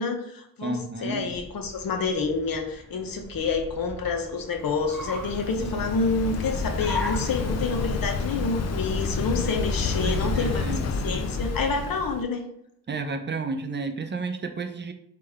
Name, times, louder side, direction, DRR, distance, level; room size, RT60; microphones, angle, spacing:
voice 1, 0.0-12.5, left 4 dB, 60° left, 5 dB, 0.8 m, -28 dB
voice 2, 0.6-1.4 5.6-5.8 10.0-11.0 12.9-14.9, right 3 dB, 30° right, 6 dB, 0.5 m, -32 dB
Car, 1.0-10.5, left 2 dB, 5° left, 0.9 m, -40 dB
Waves surf, 4.6-12.2, left 4 dB, 45° left, 0.4 m, -29 dB
3.7 x 3.3 x 3.5 m, 0.77 s
cardioid pair, 90°, 39 cm